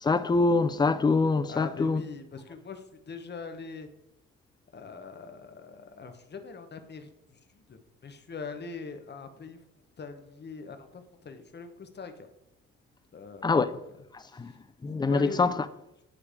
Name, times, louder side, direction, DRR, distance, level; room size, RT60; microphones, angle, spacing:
voice 1, 0.0-2.0 13.4-13.7 14.4-14.5 14.8-15.5, left 3 dB, 15° left, 0.4 m, -24 dB
voice 2, 1.5-3.9 4.7-9.6 10.0-12.3 13.1-14.0 14.3-14.6 15.1-15.4, left 5 dB, 35° left, 1.0 m, -42 dB
9.8 x 3.3 x 5.0 m
cardioid pair, 90°, 30 cm